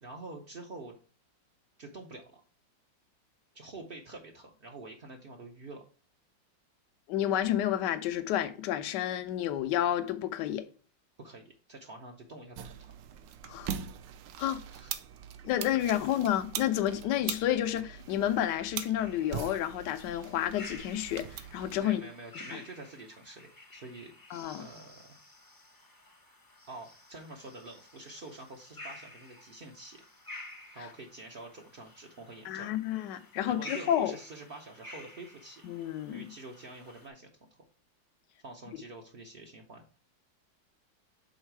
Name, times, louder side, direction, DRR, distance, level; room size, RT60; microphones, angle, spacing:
voice 1, 0.0-1.0 1.8-2.4 3.5-5.8 11.2-12.9 14.7-14.9 21.8-24.1 24.6-25.2 26.7-30.0 30.7-32.7 33.5-35.6 36.1-37.3 38.4-39.8, right 2 dB, 55° right, 0.6 m, -47 dB
voice 2, 7.1-10.7 13.4-13.7 14.4-14.6 15.4-22.0 22.5-22.6 24.3-24.6 32.4-34.1 35.6-36.3, left 11 dB, 75° left, 1.2 m, -30 dB
sound 1, 12.5-21.8, right 9 dB, 75° right, 1.2 m, -42 dB
sound 2, 19.0-37.1, left 1 dB, 20° left, 0.6 m, -51 dB
6.4 x 3.9 x 4.5 m
omnidirectional pair, 2.0 m